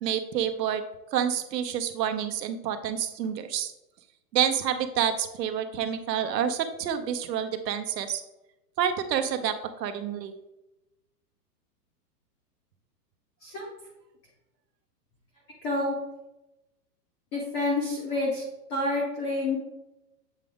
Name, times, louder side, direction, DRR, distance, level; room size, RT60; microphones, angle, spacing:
voice 1, 0.0-0.8 1.1-3.7 4.3-8.2 8.8-10.3, right 9 dB, 85° right, 9 dB, 0.9 m, -28 dB
voice 2, 15.6-15.9 17.3-18.4 18.7-19.6, left 2 dB, 15° left, -5 dB, 0.6 m, -28 dB
7.4 x 3.6 x 3.5 m, 0.94 s
supercardioid pair, 165°, 48 cm